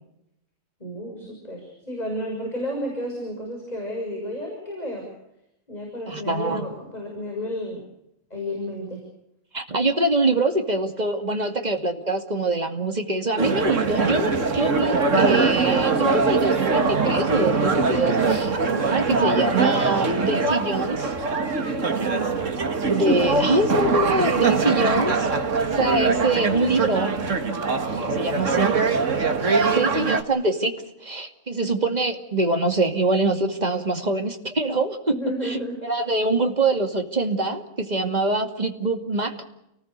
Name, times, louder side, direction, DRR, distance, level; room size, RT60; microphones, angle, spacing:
voice 1, 0.8-5.0 5.7-7.8 8.3-9.0 21.9-22.4 28.4-28.8 29.7-30.2 35.1-35.8, equal, 30° left, 0 dB, 6.9 m, -32 dB
voice 2, 6.1-6.6 9.5-18.5 18.8-21.1 22.8-25.3 25.6-27.2 28.0-28.8 29.5-30.8 31.0-35.2 35.4-39.3, right 2 dB, 30° right, 5 dB, 2.5 m, -24 dB
sound 1, 13.4-30.2, right 4 dB, 65° right, 2.2 m, -22 dB
29.5 x 20.0 x 6.8 m, 0.83 s
omnidirectional pair, 1.4 m